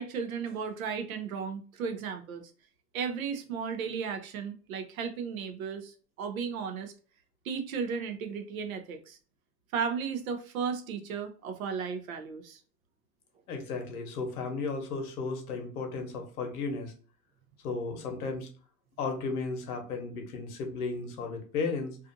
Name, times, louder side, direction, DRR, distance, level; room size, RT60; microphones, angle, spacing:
voice 1, 0.0-2.5 2.9-6.9 7.4-9.2 9.7-12.6, right 6 dB, 60° right, 0.6 m, -35 dB
voice 2, 13.5-16.9 17.6-18.5 19.0-22.0, left 4 dB, 65° left, 1.0 m, -34 dB
2.5 x 2.5 x 2.5 m
supercardioid pair, 175°, 47 cm